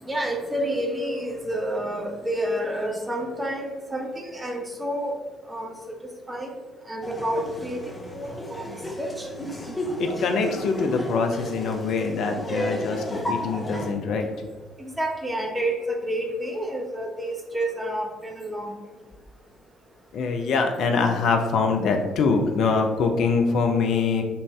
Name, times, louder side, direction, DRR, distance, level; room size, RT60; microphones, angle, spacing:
voice 1, 0.0-5.1 5.5-5.7 6.3-6.5 6.9-7.8 8.1-8.6 9.0-9.3 14.8-18.7, right 1 dB, 15° right, 1 dB, 1.0 m, -29 dB
Laughter, 7.0-13.9, equal, 25° left, 0.9 m, -33 dB
voice 2, 10.0-14.3 20.1-24.2, left 4 dB, 60° left, 5 dB, 0.5 m, -24 dB
5.4 x 2.6 x 3.2 m, 1.2 s
hypercardioid pair, 50°, 0 cm